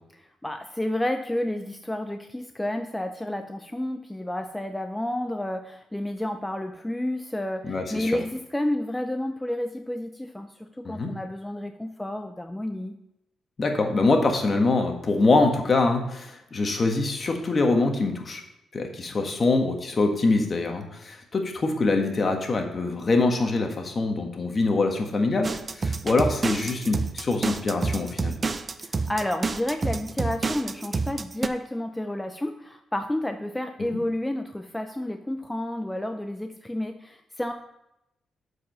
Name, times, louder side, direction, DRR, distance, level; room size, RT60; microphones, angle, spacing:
voice 1, 0.2-13.0 28.8-37.5, left 1 dB, 10° left, 6 dB, 0.6 m, -30 dB
voice 2, 7.6-8.2 10.8-11.1 13.6-18.4 18.7-25.5 25.8-28.4, left 3 dB, 45° left, 4 dB, 1.5 m, -24 dB
sound 1, 25.4-31.5, right 4 dB, 40° right, 0.5 m, -28 dB
7.4 x 4.9 x 5.6 m, 0.87 s
supercardioid pair, 55°, 0 cm